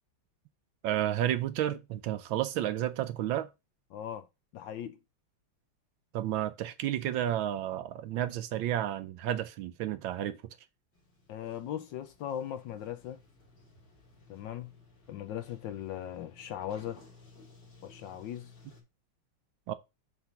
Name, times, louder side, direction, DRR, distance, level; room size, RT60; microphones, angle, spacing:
voice 1, 0.8-3.5 6.1-10.5 19.7-19.8, right 12 dB, 75° right, 1.3 m, -31 dB
voice 2, 3.9-4.3 4.5-5.0 11.3-13.2 14.3-14.7 15.1-17.0 17.8-18.5, left 10 dB, 70° left, 1.2 m, -38 dB
Sliding door, 10.9-18.8, left 3 dB, 50° left, 3.5 m, -58 dB
7.0 x 3.6 x 5.7 m
omnidirectional pair, 2.4 m